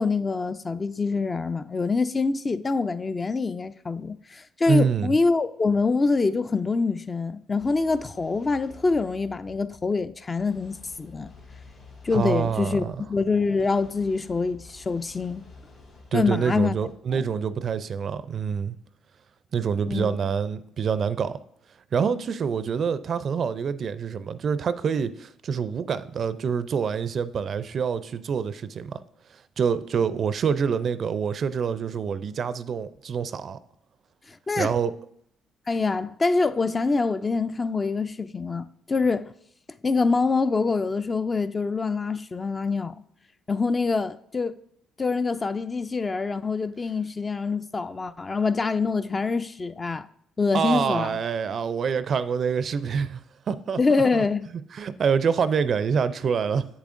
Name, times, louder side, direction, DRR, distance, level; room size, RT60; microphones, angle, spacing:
voice 1, 0.0-11.3 12.0-15.4 16.1-16.8 17.1-17.2 19.9-20.2 34.3-34.7 35.7-39.3 39.8-43.0 43.5-44.5 45.0-50.1 50.4-51.2 53.8-54.5, left 4 dB, 30° left, 0.3 m, -25 dB
voice 2, 4.7-5.1 12.1-13.0 16.1-18.8 19.5-21.4 21.9-29.0 29.6-33.6 34.6-34.9 50.5-53.2 53.5-54.2 54.7-56.7, right 6 dB, 55° right, 0.4 m, -26 dB
sound 1, 7.6-16.9, left 4 dB, 65° left, 2.7 m, -50 dB
7.4 x 7.0 x 2.5 m
supercardioid pair, 65°, 0 cm